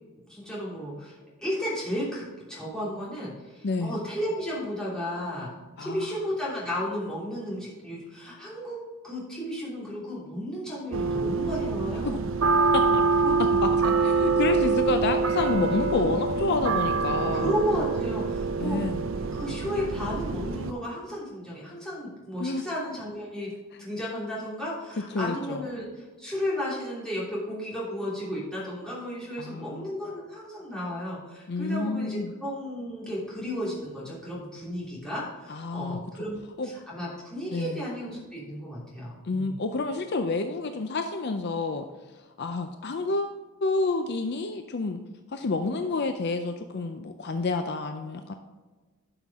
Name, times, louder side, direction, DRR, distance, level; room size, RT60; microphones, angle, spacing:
voice 1, 0.3-2.2 2.5-5.5 5.8-8.8 9.0-12.2 13.2-13.4 16.0-16.1 17.3-18.8 19.1-23.5 23.8-36.4 36.6-39.5, equal, 5° left, -7 dB, 3.0 m, -33 dB
voice 2, 3.6-4.0 5.8-6.1 12.0-12.1 12.7-13.0 13.8-17.5 18.6-19.0 22.4-22.6 25.1-25.6 29.4-29.9 31.5-32.3 35.5-36.0 36.6-36.7 37.5-37.8 39.2-41.8 42.4-45.0 45.3-48.3, left 3 dB, 50° left, 7 dB, 0.5 m, -29 dB
sound 1, 10.9-20.7, right 4 dB, 60° right, 0.5 m, -25 dB
12.0 x 5.8 x 3.6 m, 1.3 s
head